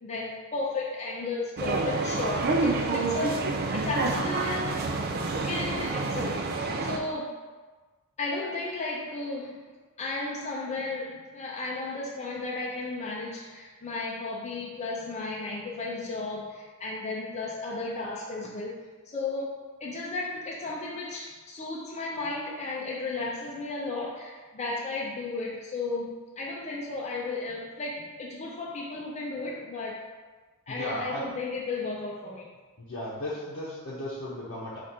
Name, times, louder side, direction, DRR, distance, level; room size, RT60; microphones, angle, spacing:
voice 1, 0.0-4.9 5.3-6.5 6.8-7.5 8.2-9.6 10.0-30.1 30.7-32.5, left 3 dB, 30° left, -4 dB, 0.5 m, -34 dB
sound 1, 1.6-7.0, right 3 dB, 45° right, 0.4 m, -28 dB
voice 2, 30.7-31.2 32.8-34.8, left 1 dB, 60° left, -8 dB, 0.8 m, -35 dB
4.7 x 2.5 x 4.2 m, 1.3 s
head